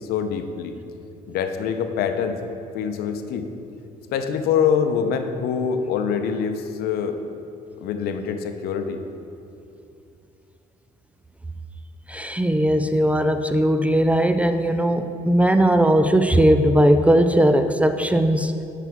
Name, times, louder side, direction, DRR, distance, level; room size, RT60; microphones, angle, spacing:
voice 1, 0.1-0.8 1.3-2.4 2.7-3.5 4.1-7.2 7.8-9.0, left 7 dB, 75° left, 7 dB, 0.6 m, -24 dB
voice 2, 12.1-18.5, right 1 dB, 10° right, 8 dB, 0.4 m, -18 dB
9.3 x 5.8 x 3.6 m, 2.7 s
supercardioid pair, 85°, 16 cm